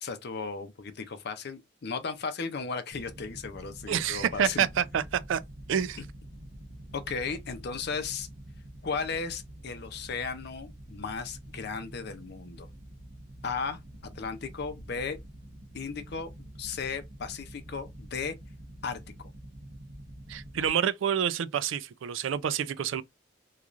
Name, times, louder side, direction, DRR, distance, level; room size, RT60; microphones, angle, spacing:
voice 1, 0.0-4.7 6.9-8.3 8.8-12.7 13.4-13.8 14.1-15.2 15.7-16.3 16.6-18.3 18.8-19.3, left 5 dB, 60° left, 0.5 m, -35 dB
sound 1, 2.9-20.7, right 1 dB, 60° right, 0.9 m, -47 dB
voice 2, 3.9-5.0 5.3-5.4 5.7-6.0 20.3-23.0, right 8 dB, 80° right, 0.3 m, -28 dB
3.0 x 2.4 x 2.4 m
head